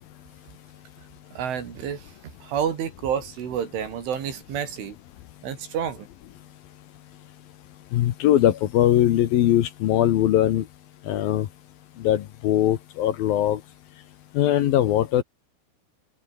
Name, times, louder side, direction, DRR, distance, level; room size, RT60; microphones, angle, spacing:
voice 1, 1.3-5.0 5.4-6.1, right 8 dB, 70° right, 5.9 m, -29 dB
voice 2, 7.9-10.6 11.1-11.5 12.0-13.6 14.3-15.2, left 12 dB, 70° left, 2.3 m, -21 dB
omnidirectional pair, 5.8 m